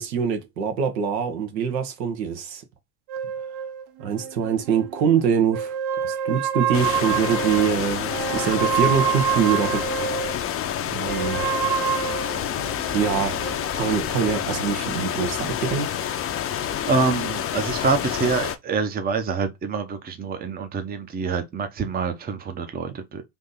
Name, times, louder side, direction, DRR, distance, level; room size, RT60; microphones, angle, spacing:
voice 1, 0.0-2.6 4.0-5.8 6.0-9.8 10.9-11.5 12.9-13.4 13.7-15.9, right 7 dB, 75° right, 1.3 m, -24 dB
sound 1, 3.1-5.1 5.5-10.4 11.1-13.7, right 8 dB, 50° right, 0.8 m, -27 dB
sound 2, 6.7-18.6, left 10 dB, 25° left, 0.6 m, -28 dB
voice 2, 16.9-23.2, right 4 dB, 20° right, 0.7 m, -26 dB
3.6 x 2.7 x 3.9 m
hypercardioid pair, 90°, 50 cm